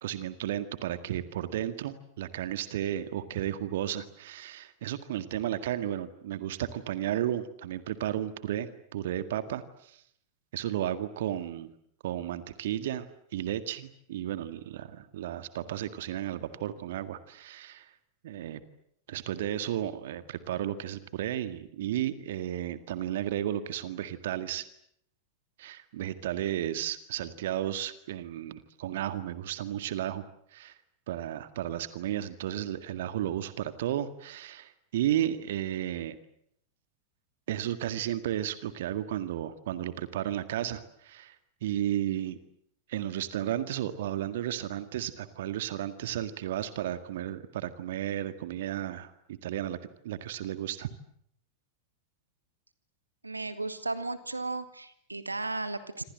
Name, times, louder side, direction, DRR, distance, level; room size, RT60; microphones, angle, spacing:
voice 1, 0.0-10.0 10.5-11.7 12.0-13.1 13.3-17.9 18.2-18.6 19.1-24.6 25.6-30.2 30.5-30.7 31.1-36.2 37.5-41.4 41.6-42.4 42.9-49.8 50.0-50.9, right 12 dB, 55° right, 11 dB, 1.9 m, -33 dB
voice 2, 53.2-56.0, right 3 dB, 80° right, 12 dB, 1.9 m, -35 dB
27.0 x 27.0 x 7.7 m, 0.71 s
figure-of-eight pair, 90°, 0 cm